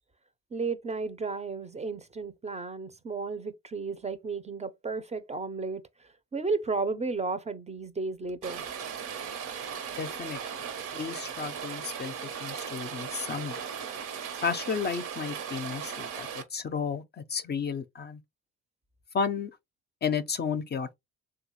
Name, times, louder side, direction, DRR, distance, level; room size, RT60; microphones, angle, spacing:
voice 1, 0.5-8.6, right 4 dB, 20° right, 0.5 m, -33 dB
Rain, 8.4-16.4, right 7 dB, 85° right, 1.0 m, -37 dB
voice 2, 10.0-10.4 10.9-13.5 14.4-18.2 19.1-19.5 20.0-21.0, left 6 dB, 35° left, 0.5 m, -32 dB
3.5 x 2.3 x 3.0 m
cardioid pair, 90°, 30 cm